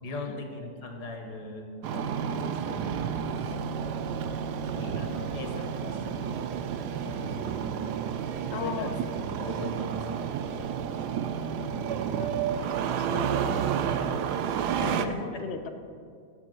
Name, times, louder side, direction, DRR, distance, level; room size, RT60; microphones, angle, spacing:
voice 1, 0.0-3.1 3.4-3.6 4.7-6.4 6.8-7.8 8.6-10.3 14.7-15.4, left 3 dB, 65° left, 3 dB, 1.6 m, -39 dB
Engine starting, 1.8-15.1, right 7 dB, 75° right, 1.0 m, -31 dB
voice 2, 8.5-9.0 12.1-12.3 12.9-13.9 14.8-15.7, left 6 dB, 90° left, 6 dB, 0.5 m, -38 dB
7.1 x 6.7 x 7.5 m, 2.3 s
omnidirectional pair, 2.0 m